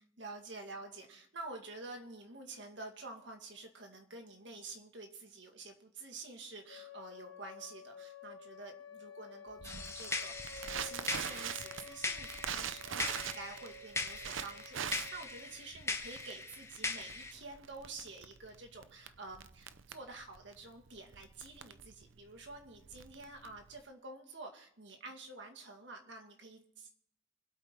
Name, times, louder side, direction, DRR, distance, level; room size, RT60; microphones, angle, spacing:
voice 1, 0.0-26.9, right 3 dB, 65° right, 4 dB, 2.1 m, -49 dB
sound 1, 6.7-15.6, left 5 dB, 70° left, 1.4 m, -52 dB
sound 2, 9.6-17.3, left 3 dB, 15° left, 1.0 m, -41 dB
Crackle, 9.6-23.8, right 8 dB, 80° right, 0.7 m, -43 dB
24.5 x 8.4 x 3.8 m, 0.70 s
head